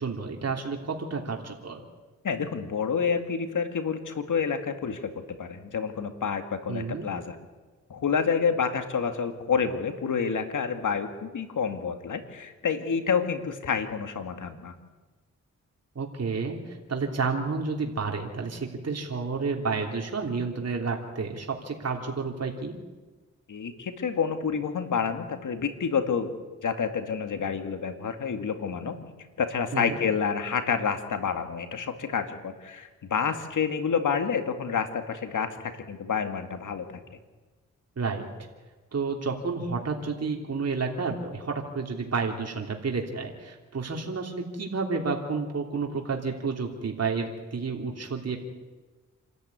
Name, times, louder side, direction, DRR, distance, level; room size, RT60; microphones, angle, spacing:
voice 1, 0.0-1.9 6.7-7.1 15.9-22.8 29.7-30.0 38.0-38.3 38.9-48.4, right 4 dB, 55° right, 1 dB, 3.2 m, -30 dB
voice 2, 2.2-7.4 7.9-14.7 23.5-26.3 26.6-29.0 29.4-37.0, left 6 dB, 80° left, 7 dB, 2.3 m, -28 dB
27.0 x 13.5 x 9.6 m, 1.3 s
cardioid pair, 60°, 31 cm